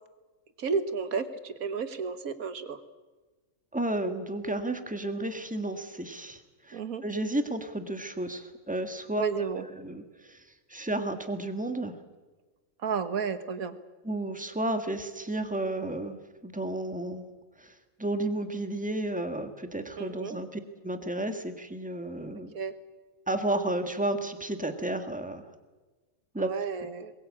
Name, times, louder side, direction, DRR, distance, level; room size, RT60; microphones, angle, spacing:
voice 1, 0.6-2.8 6.7-7.0 9.1-9.7 12.8-13.8 20.0-20.4 22.5-22.7 26.4-27.1, right 5 dB, 75° right, 11 dB, 1.8 m, -32 dB
voice 2, 3.7-10.4 10.7-11.9 14.0-17.3 17.6-17.7 18.0-22.5 23.3-25.4 26.3-26.5, right 1 dB, 5° right, 7 dB, 1.7 m, -32 dB
22.0 x 21.0 x 8.6 m, 1.3 s
omnidirectional pair, 1.5 m